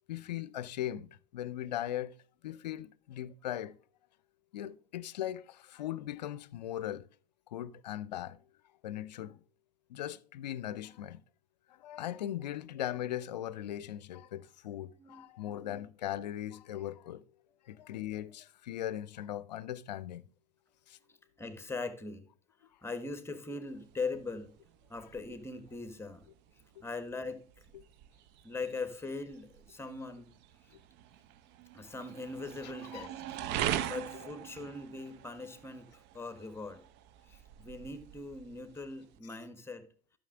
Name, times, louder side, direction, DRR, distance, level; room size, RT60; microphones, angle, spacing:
voice 1, 0.1-2.1 2.4-3.8 4.5-7.1 7.5-8.4 8.8-9.4 9.9-11.2 11.7-17.2 17.6-20.2 20.9-21.0 26.8-26.9 27.7-27.8 32.9-33.1 34.2-34.3, left 12 dB, 80° left, 0.5 m, -39 dB
voice 2, 21.1-22.2 22.8-24.5 24.9-26.2 26.8-27.7 28.4-30.3 31.7-33.4 33.9-36.8 37.3-39.9, left 3 dB, 10° left, 1.4 m, -41 dB
sound 1, 23.7-39.2, right 11 dB, 55° right, 0.8 m, -42 dB
11.5 x 6.3 x 3.7 m
hypercardioid pair, 75°, 21 cm